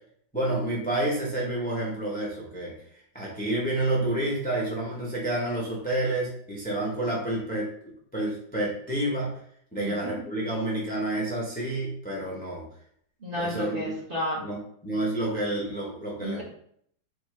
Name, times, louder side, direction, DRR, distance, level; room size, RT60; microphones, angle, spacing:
voice 1, 0.3-2.7 3.1-7.7 8.1-9.3 9.7-12.6 13.3-14.0 14.4-14.6 14.8-16.4, right 1 dB, 10° left, -4 dB, 0.4 m, -29 dB
voice 2, 9.8-10.2 13.2-14.4 16.2-16.4, equal, 35° right, -5 dB, 1.2 m, -32 dB
4.1 x 3.2 x 3.1 m, 0.66 s
omnidirectional pair, 1.9 m